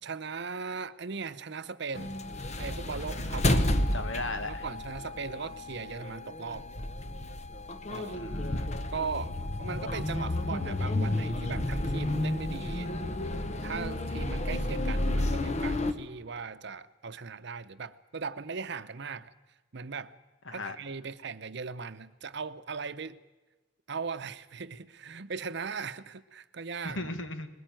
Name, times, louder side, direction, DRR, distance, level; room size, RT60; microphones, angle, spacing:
voice 1, 0.0-2.2 2.6-3.7 4.4-6.7 7.9-8.2 8.9-13.0 13.6-19.3 19.7-20.1 20.5-23.2 23.9-27.1, right 5 dB, 65° right, 13 dB, 0.8 m, -38 dB
sound 1, 1.9-15.9, left 1 dB, 35° left, 1.1 m, -31 dB
voice 2, 3.2-4.6 8.1-8.7 20.5-20.8 26.8-27.5, left 2 dB, 80° left, 8 dB, 1.9 m, -37 dB
20.5 x 16.0 x 9.1 m, 1.2 s
head